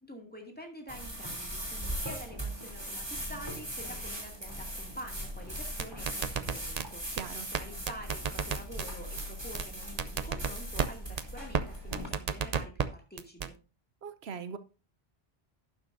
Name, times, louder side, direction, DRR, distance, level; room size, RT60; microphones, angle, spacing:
voice 1, 0.0-13.6, equal, 10° left, 2.3 m, -47 dB
sound 1, 0.9-12.1, right 1 dB, 25° right, 3.1 m, -39 dB
sound 2, 5.6-6.9 7.2-7.3 7.5-7.6 7.9-8.9 9.2-9.3 9.6-9.7 10.0-10.9 11.2-11.3 11.5-11.6 11.9-12.9 13.2-13.5, right 6 dB, 45° right, 0.7 m, -31 dB
voice 2, 7.1-7.5 14.0-14.6, right 6 dB, 80° right, 1.0 m, -40 dB
11.5 x 9.4 x 2.6 m
omnidirectional pair, 1.1 m